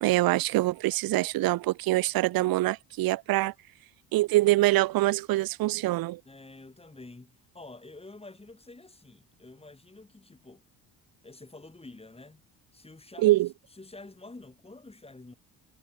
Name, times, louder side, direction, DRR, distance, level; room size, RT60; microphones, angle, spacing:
voice 1, 0.0-3.5 4.1-6.2 13.2-13.5, right 17 dB, 60° right, 0.5 m, -24 dB
voice 2, 6.2-10.6 11.2-12.4 12.7-13.4 13.7-15.3, left 2 dB, 15° left, 3.4 m, -48 dB
cardioid pair, 90°, 40 cm